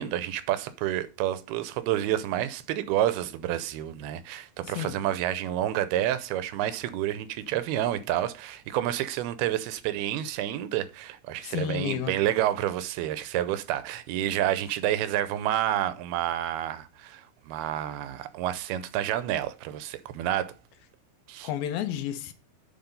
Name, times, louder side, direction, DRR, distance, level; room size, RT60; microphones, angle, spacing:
voice 1, 0.0-20.5 21.3-21.5, right 12 dB, 85° right, 2.5 m, -29 dB
voice 2, 4.7-5.0 11.4-12.1 21.4-22.3, left 11 dB, 75° left, 2.5 m, -31 dB
9.6 x 4.3 x 5.3 m
omnidirectional pair, 4.5 m